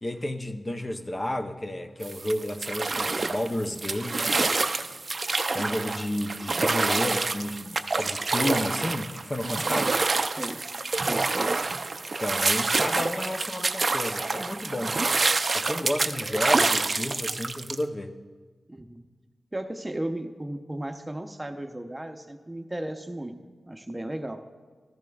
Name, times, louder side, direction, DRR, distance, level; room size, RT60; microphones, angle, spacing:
voice 1, 0.0-4.5 5.5-10.3 11.0-11.1 12.2-15.1 15.5-18.1, left 1 dB, 25° left, 5 dB, 0.7 m, -32 dB
sound 1, 2.0-17.8, right 3 dB, 50° right, 0.5 m, -27 dB
voice 2, 10.4-11.5 18.7-19.0 19.5-23.4 23.7-24.4, right 1 dB, 20° right, 6 dB, 0.8 m, -35 dB
14.0 x 14.0 x 2.4 m, 1.4 s
cardioid pair, 70°, 0 cm